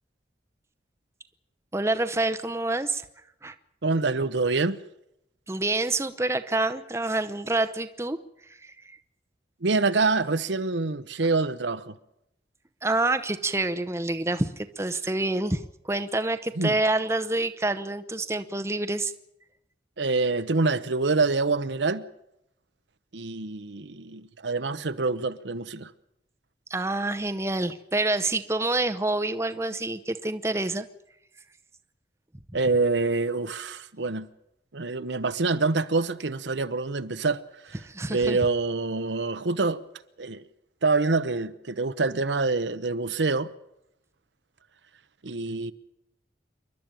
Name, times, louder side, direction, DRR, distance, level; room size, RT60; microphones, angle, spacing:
voice 1, 1.7-3.0 3.4-3.5 5.5-8.2 8.5-9.0 12.8-19.1 26.7-30.9 37.8-38.4, right 2 dB, 15° right, 0.8 m, -27 dB
voice 2, 3.8-4.8 9.6-12.0 16.6-16.8 20.0-22.0 23.1-25.9 32.5-34.3 34.7-37.8 38.1-39.8 40.2-40.4 40.8-43.5 45.2-45.7, right 3 dB, 80° right, 0.9 m, -26 dB
28.0 x 12.0 x 9.1 m
head